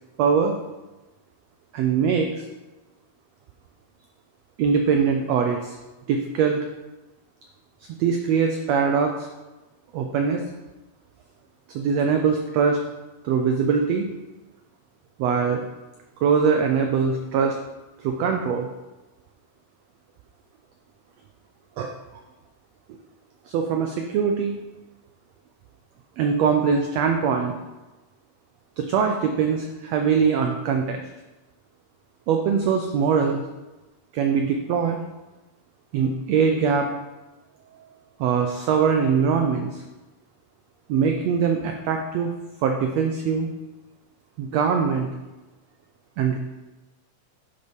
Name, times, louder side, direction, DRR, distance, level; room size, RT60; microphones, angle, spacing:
voice 1, 0.2-0.6 1.7-2.4 4.6-5.8 6.1-6.6 8.0-9.3 9.9-10.4 11.7-12.8 13.2-14.1 15.2-15.6 16.2-17.6 18.0-18.7 21.8-21.9 23.5-24.6 26.2-27.5 28.8-31.0 32.3-33.4 34.1-35.0 35.9-36.9 38.2-39.8 40.9-42.3 42.6-43.5 44.4-45.1 46.2-46.4, right 6 dB, 85° right, 4 dB, 1.5 m, -22 dB
10.5 x 5.4 x 5.2 m, 1.1 s
omnidirectional pair, 3.8 m